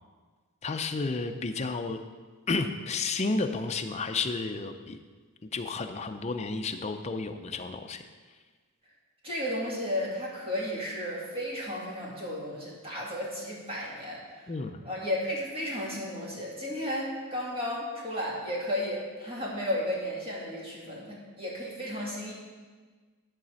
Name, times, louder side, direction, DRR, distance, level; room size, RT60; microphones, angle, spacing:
voice 1, 0.6-2.0 2.5-5.0 5.5-8.0 14.5-14.8, left 3 dB, 30° left, 7 dB, 0.5 m, -31 dB
voice 2, 9.2-14.4 14.8-22.3, left 1 dB, 25° right, -5 dB, 2.2 m, -33 dB
11.5 x 4.1 x 6.3 m, 1.4 s
head